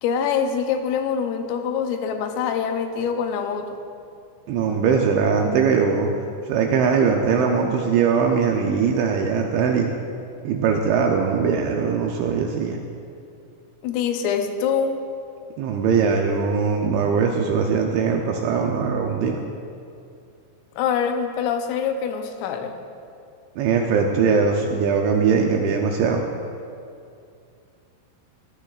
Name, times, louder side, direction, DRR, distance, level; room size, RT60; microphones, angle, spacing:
voice 1, 0.0-3.7 13.8-15.0 20.8-22.8, left 7 dB, 80° left, 5 dB, 3.3 m, -24 dB
voice 2, 4.5-6.1 6.5-9.9 10.4-12.8 15.6-19.4 23.6-26.2, right 5 dB, 80° right, 1 dB, 2.7 m, -21 dB
18.5 x 13.5 x 2.4 m, 2.5 s
omnidirectional pair, 5.9 m